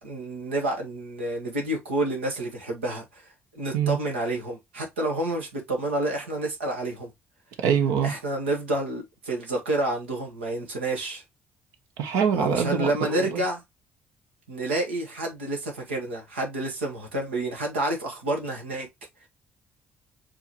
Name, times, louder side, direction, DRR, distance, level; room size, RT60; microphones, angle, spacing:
voice 1, 0.0-7.1 8.0-11.2 12.3-13.6 14.5-18.9, right 1 dB, 85° right, 1.2 m, -29 dB
voice 2, 7.6-8.1 12.0-13.4, right 7 dB, 70° right, 0.9 m, -24 dB
4.7 x 3.0 x 2.9 m
hypercardioid pair, 45°, 6 cm